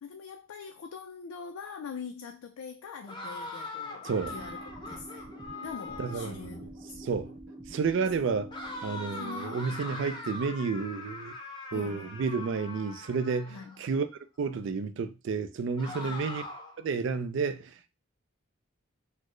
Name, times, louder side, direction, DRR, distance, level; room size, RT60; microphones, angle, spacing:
voice 1, 0.0-5.3 5.6-7.1 8.2-8.3 8.6-9.8 11.7-12.1 13.5-13.8 16.0-16.2, left 5 dB, 80° left, 0.3 m, -44 dB
sound 1, 3.1-6.5 8.5-13.8 15.8-16.8, left 2 dB, 20° left, 0.6 m, -41 dB
voice 2, 4.0-4.3 6.0-6.6 7.0-7.3 7.7-8.5 8.8-11.3 11.7-14.1 14.4-16.5 16.8-17.9, right 5 dB, 60° right, 0.3 m, -31 dB
sound 2, 4.2-10.8, right 1 dB, 15° right, 1.6 m, -47 dB
4.1 x 2.0 x 3.1 m
head